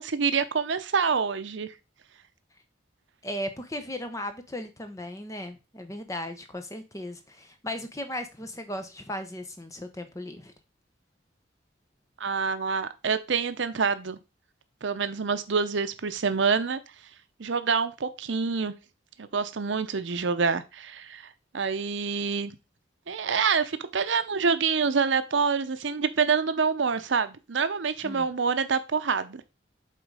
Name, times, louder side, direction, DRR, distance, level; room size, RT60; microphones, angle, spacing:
voice 1, 0.0-1.7 12.2-14.2 14.8-16.8 17.4-18.7 19.2-22.5 23.1-29.4, right 5 dB, 75° right, 12 dB, 0.7 m, -26 dB
voice 2, 3.2-10.5 28.0-28.3, left 1 dB, 15° left, 8 dB, 0.9 m, -36 dB
7.7 x 3.9 x 4.8 m, 0.28 s
head